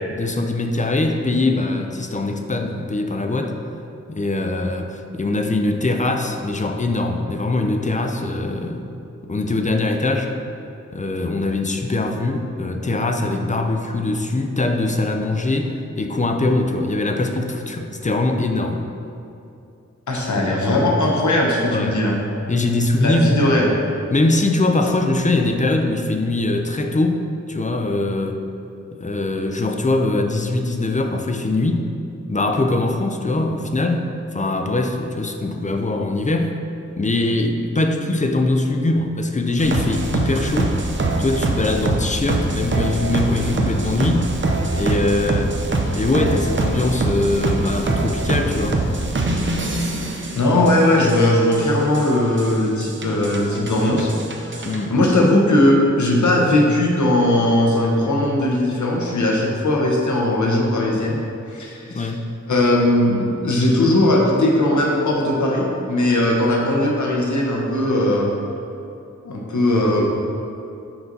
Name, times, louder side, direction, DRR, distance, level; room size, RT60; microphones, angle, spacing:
voice 1, 0.1-3.6 4.1-8.8 9.3-10.4 10.9-18.8 20.3-20.5 21.7-22.0 22.5-23.6 24.1-28.4 29.0-31.9 32.3-36.5 37.0-40.8 41.2-44.3 44.7-45.6 45.9-48.8 54.6-54.9 61.9-62.3, left 2 dB, 25° left, 4 dB, 0.5 m, -22 dB
voice 2, 20.1-22.2 23.0-23.7 50.3-54.1 54.5-61.2 61.5-62.1 62.5-68.3 69.2-70.0, left 1 dB, 85° left, -1 dB, 1.0 m, -18 dB
sound 1, 39.6-54.9, right 2 dB, 40° right, 0.7 m, -24 dB
5.8 x 4.0 x 5.3 m, 2.7 s
wide cardioid pair, 95°, 29 cm